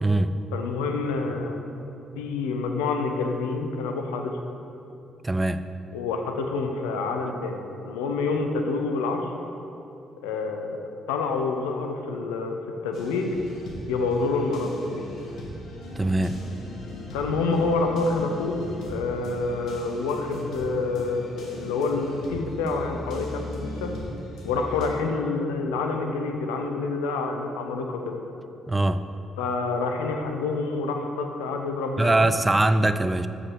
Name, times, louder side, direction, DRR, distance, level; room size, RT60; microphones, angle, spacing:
voice 1, 0.0-0.4 5.2-5.6 16.0-16.4 28.7-29.0 32.0-33.3, right 2 dB, 20° right, 11 dB, 0.3 m, -22 dB
voice 2, 0.5-1.9 2.2-4.3 5.9-7.6 7.8-9.3 10.2-10.8 11.1-12.6 12.8-13.3 13.9-15.0 17.1-18.6 18.8-23.9 24.4-28.2 29.4-32.3, left 3 dB, 75° left, 4 dB, 0.6 m, -27 dB
sound 1, 12.9-24.9, left 1 dB, 60° left, 1.2 m, -38 dB
7.4 x 5.0 x 4.6 m, 2.8 s
figure-of-eight pair, 45°, 0 cm